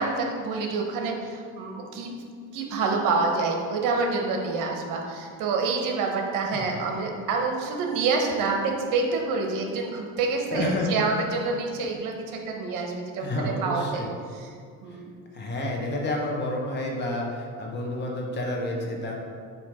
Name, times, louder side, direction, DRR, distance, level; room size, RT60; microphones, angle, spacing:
voice 1, 0.0-2.1 2.5-14.0 14.4-14.5 14.8-15.1, right 4 dB, 65° right, 2 dB, 1.1 m, -27 dB
voice 2, 10.5-11.1 13.2-14.1 15.3-19.1, left 1 dB, 30° left, 0 dB, 1.1 m, -29 dB
7.7 x 3.0 x 4.9 m, 2.1 s
cardioid pair, 125°, 34 cm